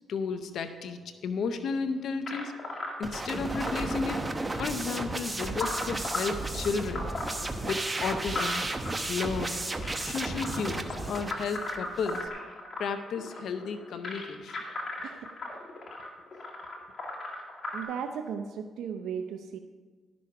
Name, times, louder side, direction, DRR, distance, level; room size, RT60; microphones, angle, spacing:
voice 1, 0.1-2.5 3.0-4.2 4.6-7.1 7.7-8.6 9.1-9.6 10.0-12.3 12.8-14.6, left 5 dB, 75° left, 8 dB, 0.7 m, -33 dB
sound 1, 2.3-17.8, left 2 dB, 50° left, 2.2 m, -38 dB
sound 2, 3.0-12.3, right 2 dB, 20° right, 0.9 m, -34 dB
voice 2, 17.7-19.6, right 7 dB, 85° right, 6 dB, 0.6 m, -36 dB
12.5 x 6.2 x 5.8 m, 1.4 s
cardioid pair, 70°, 0 cm